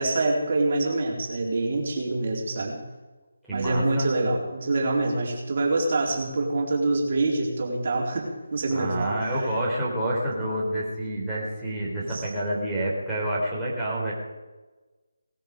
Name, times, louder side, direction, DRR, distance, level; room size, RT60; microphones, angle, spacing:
voice 1, 0.0-2.8 3.5-9.5 12.0-12.2, right 2 dB, 45° right, -1 dB, 4.3 m, -26 dB
voice 2, 3.5-4.1 8.7-14.1, right 1 dB, 5° right, -9 dB, 4.2 m, -28 dB
19.5 x 13.5 x 5.3 m, 1.2 s
figure-of-eight pair, 160°, 0 cm